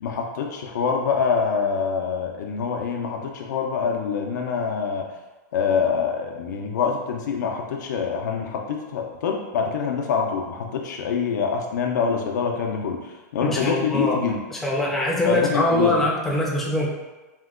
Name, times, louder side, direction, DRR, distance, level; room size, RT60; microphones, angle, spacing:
voice 1, 0.0-5.0 5.5-13.0 13.3-14.4 15.3-16.0, left 6 dB, 80° left, 2 dB, 0.4 m, -25 dB
voice 2, 13.4-14.2 14.5-16.9, left 1 dB, 5° left, -4 dB, 0.3 m, -23 dB
2.8 x 2.2 x 3.5 m, 1.2 s
supercardioid pair, 165°, 10 cm